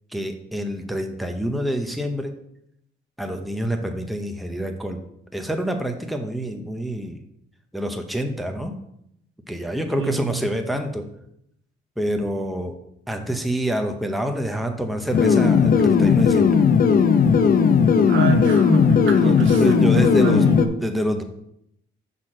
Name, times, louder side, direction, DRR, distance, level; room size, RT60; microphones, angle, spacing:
voice 1, 0.1-2.3 3.2-5.0 5.3-7.2 7.7-8.8 9.5-11.0 12.0-12.8 13.1-16.6 19.2-20.5 20.8-21.2, right 1 dB, ahead, 5 dB, 0.8 m, -27 dB
voice 2, 10.0-10.4 18.1-20.6, right 3 dB, 80° right, 4 dB, 1.1 m, -26 dB
sound 1, 15.1-20.7, left 6 dB, 45° left, 0.6 m, -16 dB
6.0 x 4.2 x 4.9 m, 0.75 s
cardioid pair, 90°, 20 cm